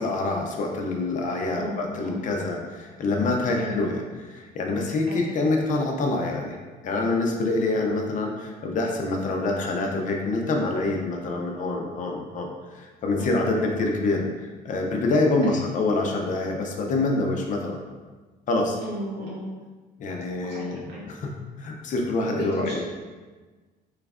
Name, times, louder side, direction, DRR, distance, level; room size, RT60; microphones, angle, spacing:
voice 1, 0.0-4.0 4.2-6.6 6.8-17.8 18.5-18.8 20.0-20.8 21.1-21.3 21.6-22.8, left 2 dB, 50° left, 1 dB, 0.6 m, -26 dB
voice 2, 1.6-2.2 3.6-3.8 5.1-5.2 13.2-13.7 15.4-15.6 18.8-19.5 20.4-21.0 22.3-22.8, equal, 90° right, -5 dB, 1.2 m, -35 dB
3.1 x 2.4 x 3.5 m, 1.3 s
cardioid pair, 110°, 17 cm